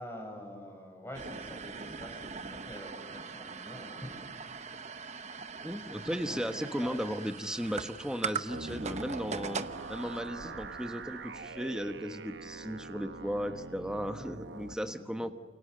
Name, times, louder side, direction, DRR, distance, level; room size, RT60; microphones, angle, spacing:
voice 1, 0.0-4.5 4.8-5.1 6.2-6.5 6.8-7.0 10.4-10.6 14.8-15.3, equal, 15° left, 3 dB, 6.0 m, -46 dB
sound 1, 1.1-11.5, right 5 dB, 40° right, 1.0 m, -42 dB
voice 2, 5.6-9.6 9.9-15.3, equal, 5° right, 7 dB, 1.3 m, -36 dB
sound 2, 8.5-14.7, right 3 dB, 65° right, 1.0 m, -43 dB
29.0 x 29.0 x 6.7 m, 1.3 s
head